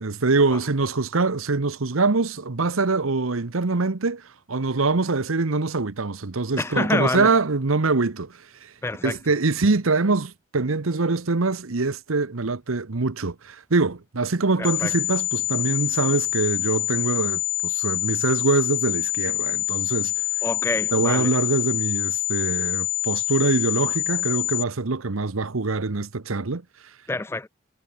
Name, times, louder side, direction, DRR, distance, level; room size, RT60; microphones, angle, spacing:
voice 1, 0.0-8.7 9.0-20.1 20.9-26.6, right 3 dB, 85° right, 1.0 m, -24 dB
voice 2, 6.6-7.3 8.8-9.2 14.6-14.9 20.4-21.3 27.1-27.5, left 2 dB, 10° left, 0.3 m, -26 dB
sound 1, 14.6-24.6, left 16 dB, 65° left, 0.7 m, -26 dB
head